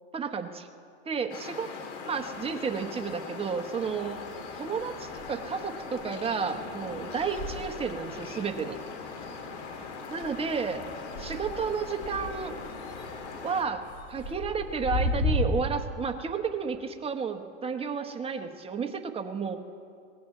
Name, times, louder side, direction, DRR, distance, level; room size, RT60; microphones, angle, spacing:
voice 1, 0.1-0.7 1.0-1.7 2.1-4.2 4.5-8.8 10.1-10.8 11.2-12.6 13.4-19.6, right 5 dB, 15° right, 5 dB, 1.1 m, -32 dB
sound 1, 1.3-13.6, left 4 dB, 70° left, 2.6 m, -40 dB
sound 2, 2.2-3.4 3.7-15.4, left 2 dB, 40° left, 4.7 m, -37 dB
23.0 x 18.5 x 3.3 m, 2.4 s
hypercardioid pair, 105°, 35 cm